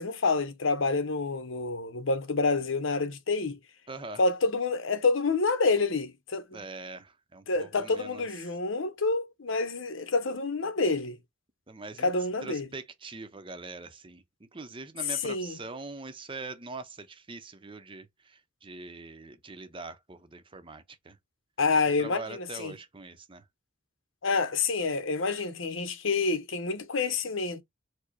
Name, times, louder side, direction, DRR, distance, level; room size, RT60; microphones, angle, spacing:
voice 1, 0.0-3.6 4.2-6.6 7.5-11.2 12.0-12.7 15.1-15.6 21.6-22.7 24.2-27.6, left 3 dB, 80° left, 0.8 m, -28 dB
voice 2, 3.9-4.2 6.5-8.3 11.7-12.1 12.4-14.2 14.5-21.2 22.0-23.4, right 3 dB, 25° right, 0.6 m, -43 dB
4.7 x 2.1 x 4.5 m
head